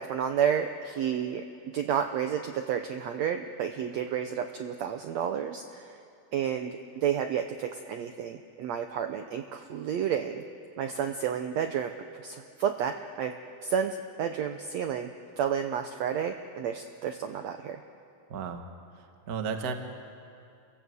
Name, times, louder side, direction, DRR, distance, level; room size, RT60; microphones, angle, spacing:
voice 1, 0.0-1.4 1.7-6.0 6.3-10.4 10.8-13.3 13.6-15.1 15.4-17.8, right 8 dB, 80° right, 6 dB, 1.6 m, -31 dB
voice 2, 18.3-18.6 18.9-19.7, right 6 dB, 55° right, 5 dB, 1.0 m, -34 dB
29.0 x 16.5 x 7.8 m, 2.5 s
omnidirectional pair, 4.1 m